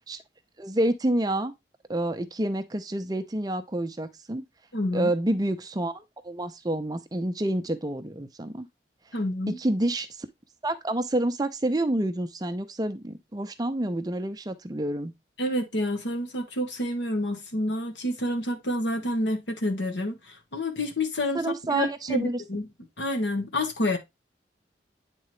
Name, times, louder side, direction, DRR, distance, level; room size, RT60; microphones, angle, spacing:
voice 1, 0.6-1.5 1.9-4.4 4.9-8.7 9.6-10.3 10.6-15.1 21.3-22.4, right 1 dB, 20° right, 0.6 m, -28 dB
voice 2, 4.7-5.1 9.1-9.6 15.4-20.1 20.5-21.4 21.7-22.7 23.0-24.0, left 1 dB, 85° left, 1.4 m, -28 dB
9.1 x 3.8 x 3.1 m
head